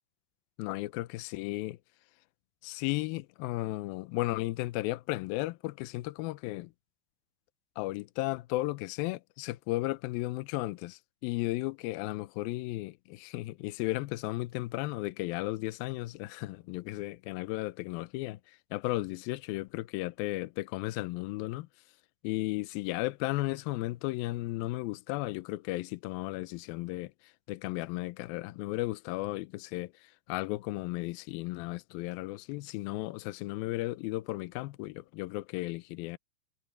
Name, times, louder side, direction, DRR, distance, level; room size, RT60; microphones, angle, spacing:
voice 1, 0.6-1.8 2.6-6.7 7.8-21.7 22.2-36.2, left 19 dB, 75° left, 2.3 m, -35 dB
omnidirectional pair, 4.6 m